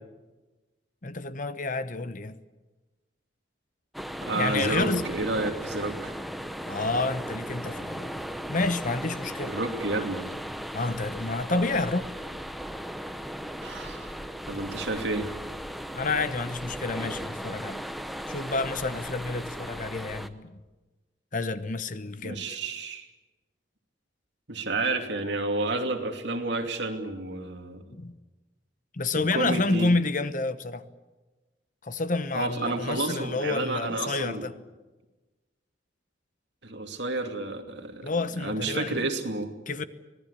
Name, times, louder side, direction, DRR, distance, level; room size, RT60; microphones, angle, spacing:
voice 1, 1.0-2.4 4.3-5.1 6.7-8.2 8.5-9.5 10.7-12.1 15.9-17.8 18.3-20.5 21.3-22.4 27.9-28.1 28.9-30.8 31.8-34.5 38.0-39.0 39.7-39.9, left 3 dB, 45° left, 1.0 m, -29 dB
sound 1, 3.9-20.3, equal, ahead, 0.8 m, -37 dB
voice 2, 4.2-6.1 9.4-10.3 13.6-14.2 14.5-15.3 22.2-23.1 24.5-27.8 29.3-29.9 32.3-34.5 36.6-38.1 38.4-39.5, right 2 dB, 65° right, 2.8 m, -30 dB
25.5 x 18.5 x 8.4 m
head